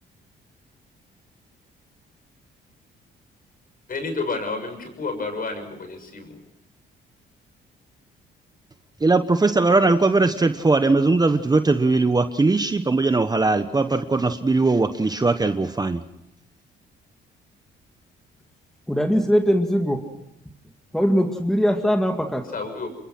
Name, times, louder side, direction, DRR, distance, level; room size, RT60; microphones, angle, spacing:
voice 1, 3.9-6.4 22.5-22.9, left 3 dB, 45° left, 7 dB, 6.8 m, -30 dB
voice 2, 9.0-16.0, right 3 dB, 20° right, 9 dB, 1.1 m, -20 dB
voice 3, 18.9-20.1 20.9-22.5, equal, ahead, 4 dB, 2.2 m, -21 dB
28.0 x 22.5 x 6.1 m, 0.83 s
cardioid pair, 90°, 20 cm